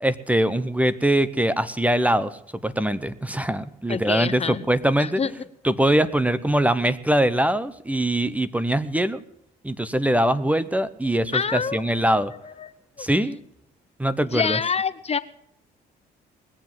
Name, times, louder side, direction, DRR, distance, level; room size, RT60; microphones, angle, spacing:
voice 1, 0.0-5.2 5.6-9.2 9.6-12.3 13.0-13.4 14.0-14.6, right 1 dB, 10° right, 15 dB, 0.8 m, -22 dB
voice 2, 3.9-4.6 5.0-5.3 11.3-12.0 12.4-12.7 13.0-13.1 14.3-15.2, left 6 dB, 35° left, 14 dB, 0.7 m, -26 dB
20.0 x 7.5 x 7.3 m, 0.75 s
supercardioid pair, 75°, 19 cm